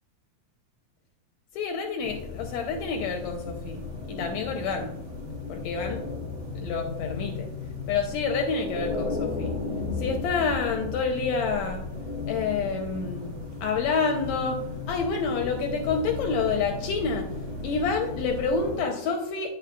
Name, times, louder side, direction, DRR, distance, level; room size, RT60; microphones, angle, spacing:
voice 1, 1.5-5.0 5.5-6.0 6.6-7.5 7.9-9.6 10.0-11.8 12.3-14.6 14.9-17.3 17.6-19.5, left 5 dB, 80° left, 3 dB, 1.7 m, -28 dB
sound 1, 2.0-18.8, left 3 dB, 50° right, 2.5 m, -35 dB
8.6 x 6.4 x 2.2 m, 0.82 s
omnidirectional pair, 3.6 m